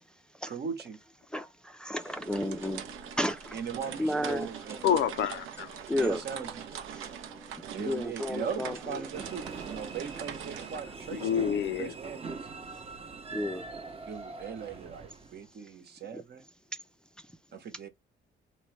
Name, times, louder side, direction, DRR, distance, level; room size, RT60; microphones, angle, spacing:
voice 1, 0.4-1.0 3.5-5.0 5.9-6.7 7.7-11.3 11.8-12.4 14.1-16.4 17.5-17.9, right 6 dB, 55° right, 0.9 m, -39 dB
voice 2, 1.8-2.8 3.2-3.6 4.0-4.5 5.9-6.2 7.9-9.0 13.3-13.6 16.1-16.2, left 1 dB, 5° left, 0.4 m, -31 dB
sound 1, 2.0-10.3, right 2 dB, 15° right, 1.0 m, -52 dB
sound 2, 2.1-10.8, right 9 dB, 85° right, 0.6 m, -43 dB
voice 3, 4.8-5.7 11.2-11.9, left 9 dB, 70° left, 0.4 m, -28 dB
sound 3, 9.1-15.4, right 4 dB, 30° right, 0.7 m, -42 dB
3.1 x 2.1 x 3.1 m
cardioid pair, 90°, 20 cm